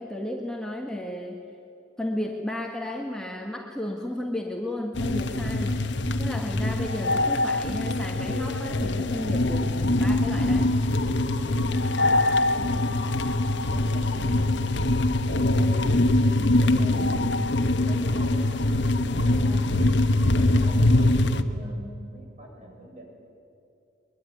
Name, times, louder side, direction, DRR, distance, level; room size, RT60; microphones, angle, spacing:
voice 1, 0.0-1.5 2.0-10.7, left 1 dB, 5° left, 0 dB, 1.5 m, -33 dB
sound 1, 4.9-21.4, left 2 dB, 65° left, 1.2 m, -23 dB
voice 2, 12.5-12.9 13.5-14.6 15.3-18.7 19.1-19.7 20.3-23.1, right 1 dB, 40° right, 0 dB, 6.7 m, -44 dB
23.0 x 22.0 x 9.3 m, 2.6 s
head